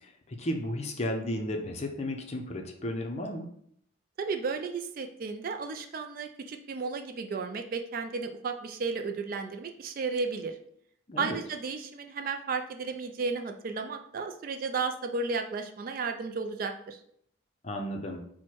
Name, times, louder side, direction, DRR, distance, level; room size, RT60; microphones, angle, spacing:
voice 1, 0.0-3.5 11.1-11.4 17.6-18.2, left 1 dB, 30° left, 3 dB, 0.5 m, -34 dB
voice 2, 4.2-10.5 11.2-17.0, right 4 dB, 45° right, 5 dB, 0.3 m, -33 dB
4.5 x 2.1 x 4.3 m, 0.69 s
head